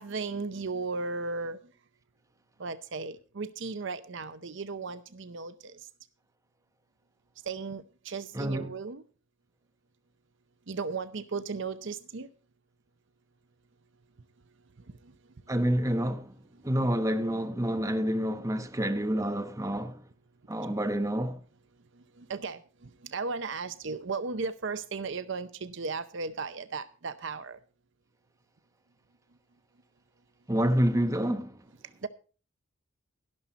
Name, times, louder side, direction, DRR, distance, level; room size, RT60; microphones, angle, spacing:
voice 1, 0.0-1.6 2.6-5.9 7.4-9.0 10.7-12.3 15.0-15.1 16.5-16.6 21.9-27.6 32.0-32.1, right 4 dB, 60° right, 0.7 m, -36 dB
voice 2, 8.3-8.7 15.5-16.3 16.6-20.0 20.5-21.4 30.5-31.6, equal, 15° right, 1.0 m, -28 dB
12.0 x 11.5 x 4.1 m
head